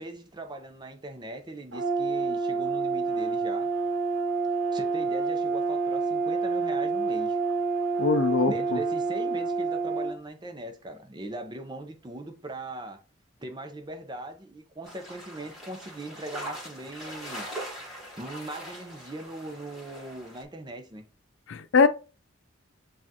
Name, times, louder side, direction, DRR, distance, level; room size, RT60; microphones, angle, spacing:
voice 1, 0.0-3.7 4.7-7.4 8.5-13.0 13.4-17.5 18.2-21.0, right 1 dB, 25° right, 0.6 m, -40 dB
Brass instrument, 1.7-10.1, right 4 dB, 90° right, 1.1 m, -28 dB
voice 2, 8.0-8.8 21.5-21.9, left 4 dB, 75° left, 0.4 m, -22 dB
sound 1, 14.8-20.4, right 1 dB, ahead, 1.6 m, -41 dB
7.3 x 2.5 x 2.8 m
head